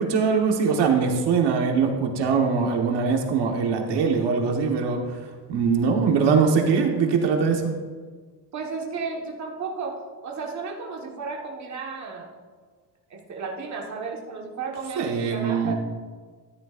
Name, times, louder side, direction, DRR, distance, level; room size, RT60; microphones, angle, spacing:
voice 1, 0.0-5.2 5.5-7.7 15.0-15.7, right 5 dB, 70° right, 2 dB, 1.4 m, -22 dB
voice 2, 8.5-12.3 13.1-15.7, right 4 dB, 40° right, -1 dB, 1.5 m, -33 dB
13.5 x 10.5 x 2.5 m, 1.5 s
cardioid pair, 155°, 43 cm